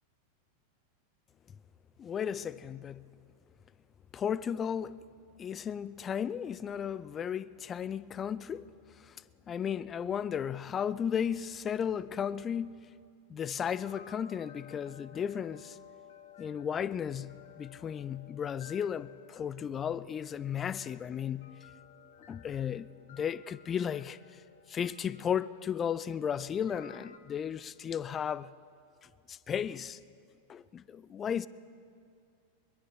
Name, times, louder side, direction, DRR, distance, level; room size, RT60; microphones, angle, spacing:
voice 1, 2.0-3.1 4.1-5.0 5.4-8.7 9.1-12.9 13.3-15.8 16.4-21.5 22.3-24.2 24.7-28.5 29.3-30.0 30.5-31.5, left 8 dB, 25° left, 0.5 m, -34 dB
sound 1, 13.6-27.2, left 8 dB, 55° left, 1.2 m, -56 dB
22.5 x 21.5 x 6.3 m
figure-of-eight pair, 90°, 0 cm